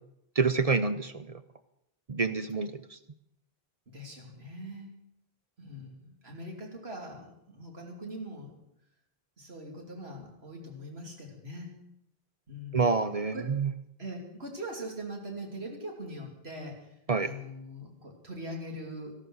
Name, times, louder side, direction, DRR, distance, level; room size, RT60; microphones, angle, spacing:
voice 1, 0.4-1.4 2.1-3.0 12.7-13.7 17.1-17.3, right 4 dB, 40° right, 11 dB, 0.6 m, -27 dB
voice 2, 3.9-4.9 5.6-8.5 9.4-11.7 12.5-12.9 13.3-13.5 14.0-16.9 17.2-19.1, equal, 80° right, 0 dB, 3.1 m, -42 dB
14.0 x 12.5 x 6.3 m, 0.80 s
omnidirectional pair, 1.1 m